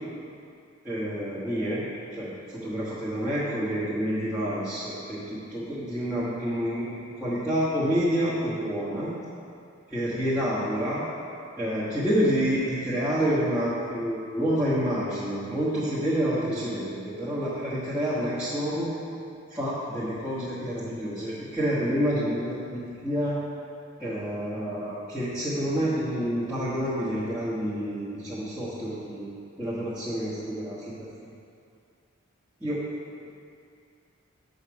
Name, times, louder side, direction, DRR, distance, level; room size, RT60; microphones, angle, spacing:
voice 1, 0.8-1.8 2.1-9.2 9.9-11.0 11.6-18.9 19.5-23.4 24.0-30.9 31.2-31.3 32.6-32.8, equal, 5° right, -13 dB, 1.2 m, -28 dB
6.4 x 5.2 x 6.1 m, 2.5 s
head